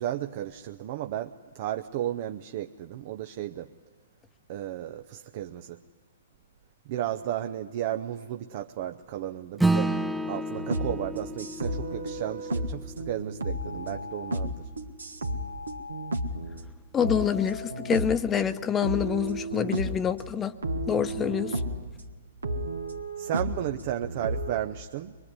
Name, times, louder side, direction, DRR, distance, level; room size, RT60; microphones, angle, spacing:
voice 1, 0.0-3.7 4.5-5.8 6.9-10.0 10.3-14.7 23.2-25.2, right 12 dB, 45° right, 7 dB, 0.8 m, -34 dB
Acoustic guitar / Strum, 9.6-14.4, right 2 dB, 5° right, 0.7 m, -31 dB
sound 1, 10.6-16.7 17.0-18.5 18.8-20.1 20.6-21.9 22.4-24.6, right 1 dB, 80° right, 1.7 m, -33 dB
voice 2, 16.9-20.5 20.9-21.6, left 8 dB, 20° left, 11 dB, 1.0 m, -26 dB
23.5 x 22.5 x 9.8 m, 1.4 s
figure-of-eight pair, 115°, 0 cm